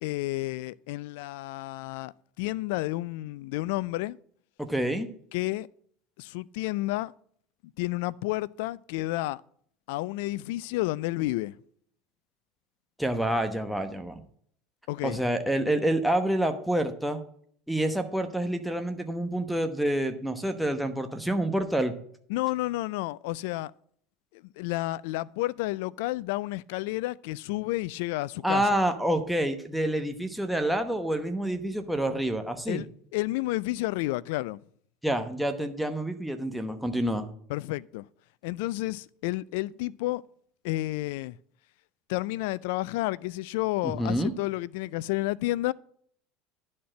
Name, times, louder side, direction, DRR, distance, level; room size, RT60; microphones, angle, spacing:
voice 1, 0.0-4.2 5.3-5.7 6.2-7.1 7.8-9.4 9.9-11.6 14.9-15.2 22.3-23.7 24.3-28.8 32.7-32.9 33.1-34.6 37.5-38.1 38.4-40.2 40.6-41.4 42.1-45.7, left 18 dB, 75° left, 0.3 m, -31 dB
voice 2, 4.6-5.1 13.0-14.2 15.0-17.2 17.7-21.9 28.4-32.8 35.0-37.3 43.8-44.3, right 1 dB, ahead, 1.0 m, -28 dB
11.0 x 4.3 x 7.6 m
supercardioid pair, 95°, 0 cm